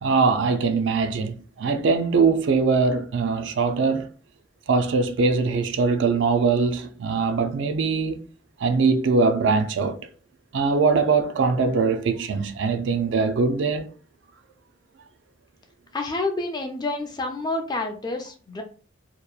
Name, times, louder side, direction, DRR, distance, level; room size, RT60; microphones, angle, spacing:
voice 1, 0.0-4.1 4.7-8.2 8.6-10.0 10.5-13.9, right 4 dB, 65° right, 0.4 m, -22 dB
voice 2, 15.9-18.6, left 2 dB, 20° left, 0.4 m, -28 dB
2.8 x 2.1 x 2.3 m
head